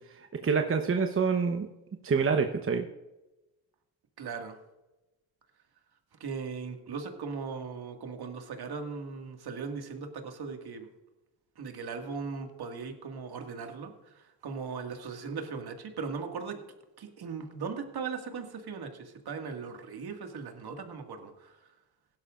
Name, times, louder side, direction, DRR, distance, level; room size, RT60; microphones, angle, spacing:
voice 1, 0.4-1.7 2.0-2.8, right 5 dB, 25° right, 5 dB, 0.9 m, -26 dB
voice 2, 4.2-4.6 6.2-10.9 11.6-13.9 14.4-16.6 17.0-21.5, right 5 dB, 50° right, 5 dB, 2.0 m, -38 dB
17.0 x 11.5 x 2.5 m, 1.0 s
hypercardioid pair, 60°, 50 cm